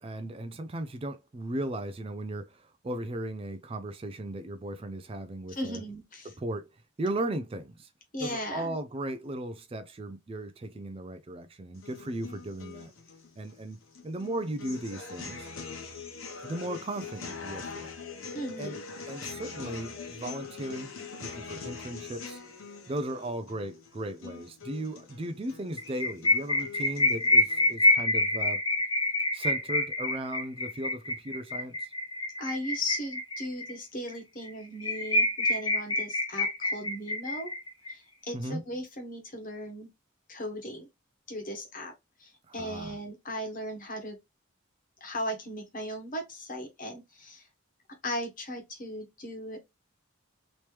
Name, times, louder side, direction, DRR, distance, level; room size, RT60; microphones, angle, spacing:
voice 1, 0.0-5.8 6.2-7.9 8.2-12.9 13.4-15.5 16.4-17.9 18.6-18.8 19.1-20.9 21.2-22.4 22.9-28.6 29.3-31.9 38.3-38.6 42.5-43.0, right 1 dB, 25° right, 0.4 m, -36 dB
voice 2, 5.5-6.3 8.1-8.7 18.3-18.8 32.4-37.5 37.9-39.9 40.3-40.9 41.3-41.9 42.2-44.2 45.0-47.4 48.0-49.6, left 1 dB, 40° left, 1.2 m, -37 dB
sound 1, 11.7-27.7, left 5 dB, 80° left, 1.1 m, -43 dB
sound 2, 25.8-33.7 34.1-34.2 34.5-34.6 34.8-37.9, left 1 dB, 20° left, 0.7 m, -27 dB
3.1 x 2.9 x 3.2 m
head